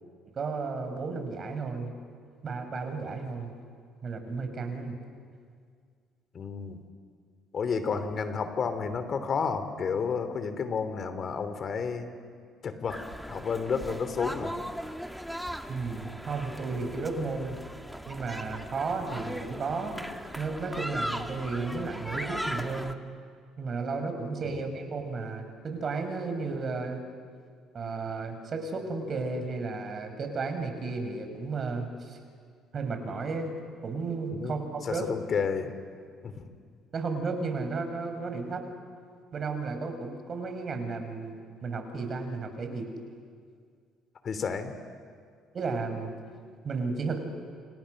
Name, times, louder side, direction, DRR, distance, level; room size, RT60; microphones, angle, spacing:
voice 1, 0.4-1.9 2.4-3.5 4.0-5.0 15.7-17.6 18.1-20.1 20.4-23.0 23.6-27.0 27.7-32.2 32.7-33.6 33.8-35.1 36.9-38.6 39.3-41.4 41.6-42.9 45.5-46.1 46.6-47.2, right 4 dB, 45° right, 6 dB, 5.5 m, -33 dB
voice 2, 6.3-6.8 7.5-12.1 12.6-13.0 13.3-14.5 24.4-24.6 34.3-35.7 36.2-36.4 44.2-44.8, left 5 dB, 45° left, 9 dB, 2.9 m, -31 dB
sound 1, 12.9-22.9, equal, ahead, 1.8 m, -38 dB
28.5 x 28.0 x 6.5 m, 2.1 s
supercardioid pair, 65°, 0 cm